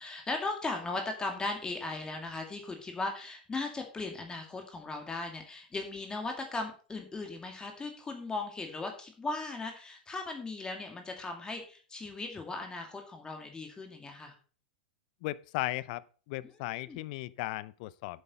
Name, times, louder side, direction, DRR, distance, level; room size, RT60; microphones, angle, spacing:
voice 1, 0.0-14.3 16.8-17.0, left 3 dB, 15° left, 2.2 m, -37 dB
voice 2, 15.2-18.2, left 18 dB, 55° left, 0.6 m, -36 dB
10.0 x 8.1 x 4.3 m
hypercardioid pair, 105°, 5 cm